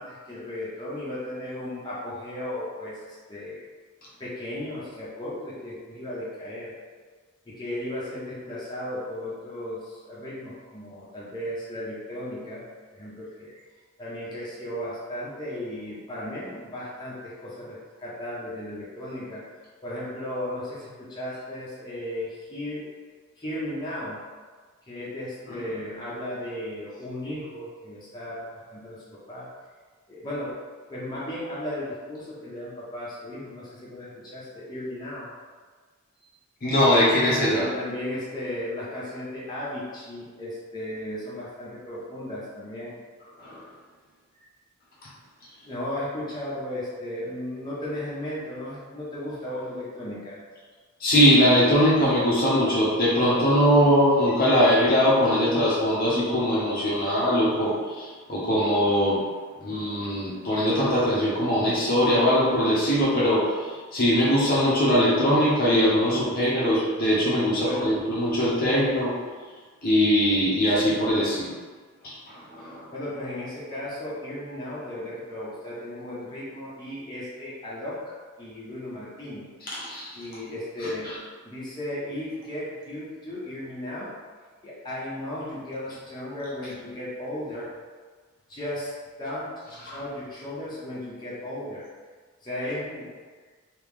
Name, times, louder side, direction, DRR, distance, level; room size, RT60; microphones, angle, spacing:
voice 1, 0.0-3.6 4.2-6.7 7.5-13.6 14.0-19.4 19.8-22.9 23.4-24.2 24.9-28.4 28.7-29.5 30.1-30.5 30.9-35.3 37.5-43.0 45.6-50.4 67.6-68.0 72.6-78.0 78.4-79.5 80.1-81.1 81.4-84.1 84.6-87.7 88.5-88.9 89.2-89.5 89.8-91.9 92.4-93.1, left 1 dB, 20° left, -9 dB, 0.9 m, -35 dB
voice 2, 36.6-37.7 43.4-43.6 51.0-59.2 59.6-63.5 63.9-69.1 69.8-71.5 72.0-72.8 79.7-80.1 89.9-90.0, equal, 45° left, -7 dB, 0.9 m, -21 dB
3.1 x 3.0 x 3.5 m, 1.4 s
head